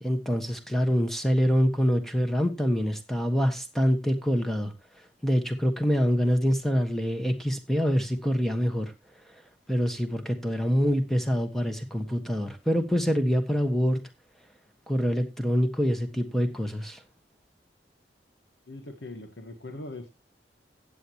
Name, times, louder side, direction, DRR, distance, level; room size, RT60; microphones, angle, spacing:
voice 1, 0.0-4.7 5.2-8.9 9.7-14.0 14.9-17.0, equal, ahead, 1.4 m, -25 dB
voice 2, 18.7-20.1, left 2 dB, 85° left, 1.4 m, -41 dB
15.5 x 8.6 x 3.0 m
head